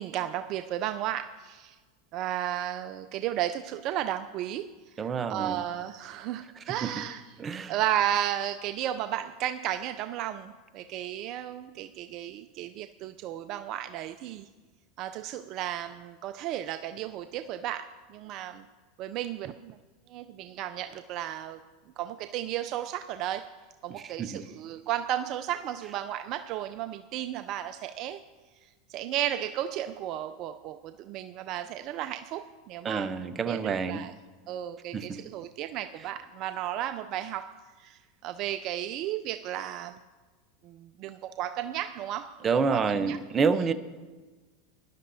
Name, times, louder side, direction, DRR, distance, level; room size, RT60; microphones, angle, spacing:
voice 1, 0.0-1.8 2.1-7.2 7.7-14.5 15.0-18.7 19.0-19.8 20.1-21.6 22.0-23.5 23.8-28.2 28.9-34.1 34.5-40.0 40.6-43.2, right 11 dB, 50° right, 10 dB, 0.4 m, -34 dB
voice 2, 5.0-5.6 6.7-6.9 7.4-7.7 23.9-24.4 32.8-34.0 34.9-35.2 42.4-43.7, right 5 dB, 25° right, 12 dB, 0.7 m, -28 dB
18.5 x 11.0 x 2.7 m, 1.3 s
hypercardioid pair, 105°, 0 cm